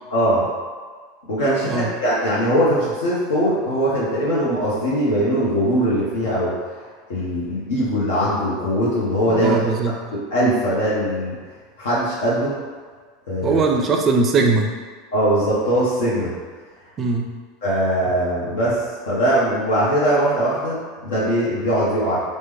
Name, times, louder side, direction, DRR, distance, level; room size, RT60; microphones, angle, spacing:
voice 1, 0.1-0.5 1.3-6.5 7.1-9.8 10.1-11.4 11.8-12.6 13.3-13.6 15.1-16.3 17.6-18.8 19.1-22.2, equal, 70° left, -8 dB, 0.8 m, -21 dB
voice 2, 9.3-10.0 13.4-14.7 17.0-17.3, right 4 dB, 35° right, 3 dB, 0.4 m, -20 dB
3.0 x 2.1 x 3.4 m, 1.5 s
hypercardioid pair, 85°, 0 cm